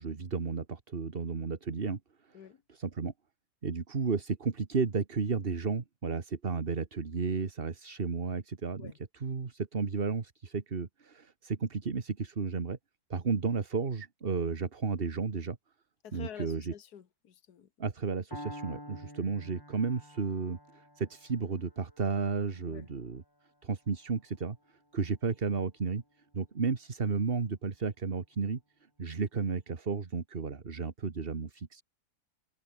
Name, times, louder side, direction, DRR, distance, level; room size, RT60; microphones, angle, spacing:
voice 1, 0.0-2.0 2.3-2.4 2.7-3.1 3.6-8.9 9.2-12.8 13.1-15.6 16.1-16.7 17.8-23.2 23.6-24.6 24.9-26.0 26.3-28.6 29.0-31.8, right 5 dB, 35° right, 1.6 m, -33 dB
voice 2, 16.0-17.9 22.7-22.9, left 9 dB, 70° left, 1.9 m, -49 dB
Piano, 18.3-26.2, equal, 15° left, 6.8 m, -50 dB
omnidirectional pair, 1.7 m